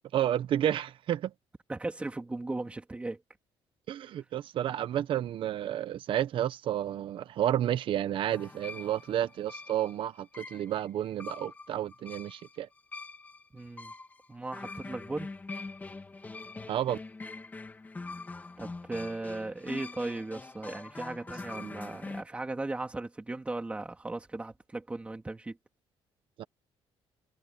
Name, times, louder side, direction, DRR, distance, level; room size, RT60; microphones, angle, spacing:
voice 1, 0.1-1.3 3.9-12.7 16.7-17.0 21.6-21.7 26.4-26.5, right 11 dB, 55° right, 1.0 m, -31 dB
voice 2, 1.7-3.2 13.5-13.9 14.3-15.3 18.6-25.6, right 2 dB, 10° right, 2.9 m, -37 dB
sound 1, 8.3-22.2, left 3 dB, 15° left, 2.6 m, -44 dB
cardioid pair, 160°, 11 cm